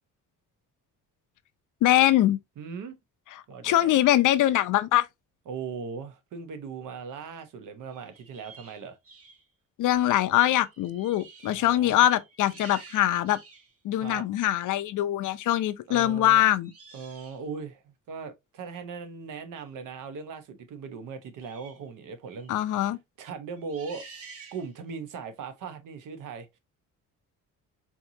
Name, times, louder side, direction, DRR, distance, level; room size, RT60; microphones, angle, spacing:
voice 1, 1.8-2.4 3.6-5.1 9.8-13.4 13.8-16.7 22.5-23.0, left 13 dB, 65° left, 0.6 m, -23 dB
voice 2, 2.6-3.0 3.5-4.0 5.5-9.0 11.5-12.0 13.9-14.3 15.9-16.4 16.9-22.6 23.2-24.0 24.5-26.6, right 5 dB, 65° right, 0.9 m, -39 dB
sound 1, 7.8-9.4 10.1-10.3 10.6-11.7 12.1-13.7 14.4-14.6 16.6-17.5 21.4-21.8 22.3-22.5 23.6-24.9, right 4 dB, 45° right, 1.3 m, -50 dB
4.5 x 2.8 x 2.7 m
cardioid pair, 125°, 33 cm